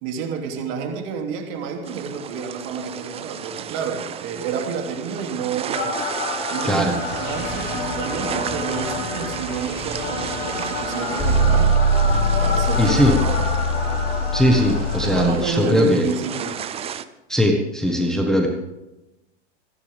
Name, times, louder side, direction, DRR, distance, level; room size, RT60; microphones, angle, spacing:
voice 1, 0.0-6.0 6.5-11.8 12.4-13.5 15.0-16.6, right 6 dB, 50° right, 2 dB, 2.9 m, -29 dB
sound 1, 1.8-17.0, right 9 dB, 15° right, 0.6 m, -33 dB
sound 2, 5.7-15.3, equal, 30° left, 5.4 m, -23 dB
voice 2, 6.6-6.9 12.8-13.1 14.3-16.1 17.3-18.5, equal, ahead, 1 dB, 1.5 m, -19 dB
27.0 x 11.0 x 3.6 m, 0.97 s
hypercardioid pair, 135°, 35 cm